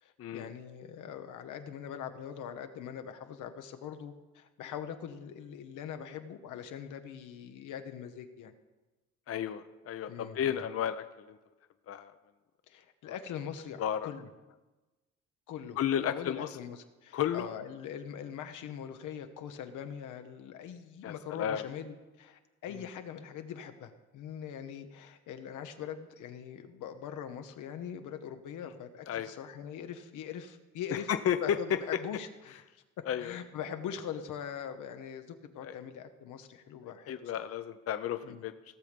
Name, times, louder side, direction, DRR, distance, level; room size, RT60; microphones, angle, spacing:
voice 1, 0.0-8.5 10.1-10.7 12.7-14.3 15.5-31.1 31.4-32.6 33.0-37.5 38.2-38.4, left 8 dB, 85° left, 7 dB, 1.0 m, -42 dB
voice 2, 9.3-11.4 11.9-12.1 13.1-13.2 13.8-14.1 15.8-16.6 17.1-17.5 21.0-21.6 29.1-29.3 30.9-31.4 33.1-33.3 35.6-35.7 37.1-38.5, left 9 dB, 50° left, 10 dB, 0.6 m, -33 dB
16.5 x 6.6 x 5.2 m, 1.2 s
cardioid pair, 90°, 30 cm